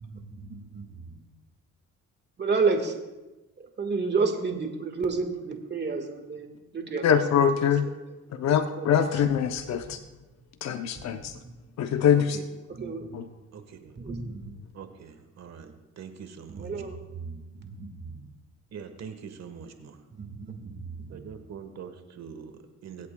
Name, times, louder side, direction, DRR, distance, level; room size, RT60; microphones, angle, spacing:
voice 1, 0.0-1.2 2.4-2.9 3.8-7.1 8.9-9.1 9.8-9.9 11.0-11.5 12.8-13.2 14.0-14.5 16.5-18.1 20.2-21.2, right 4 dB, 35° right, 5 dB, 1.7 m, -31 dB
voice 2, 7.0-7.9 8.3-10.0 10.6-11.3 11.8-12.4 13.1-13.3, left 8 dB, 60° left, 7 dB, 0.7 m, -23 dB
voice 3, 13.5-14.0 14.7-16.7 18.7-20.1 21.1-23.1, right 7 dB, 60° right, 7 dB, 1.4 m, -43 dB
23.5 x 8.4 x 2.2 m, 1.1 s
cardioid pair, 90°, 30 cm